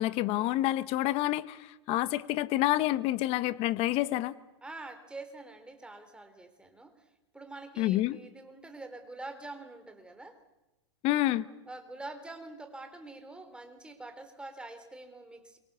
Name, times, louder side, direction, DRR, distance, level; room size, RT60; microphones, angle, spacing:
voice 1, 0.0-4.3 7.8-8.2 11.0-11.4, left 15 dB, 45° left, 16 dB, 1.1 m, -28 dB
voice 2, 4.6-7.0 7.3-10.4 11.6-15.6, right 2 dB, 5° right, 7 dB, 3.7 m, -45 dB
28.5 x 24.0 x 6.9 m, 1.0 s
hypercardioid pair, 105°, 14 cm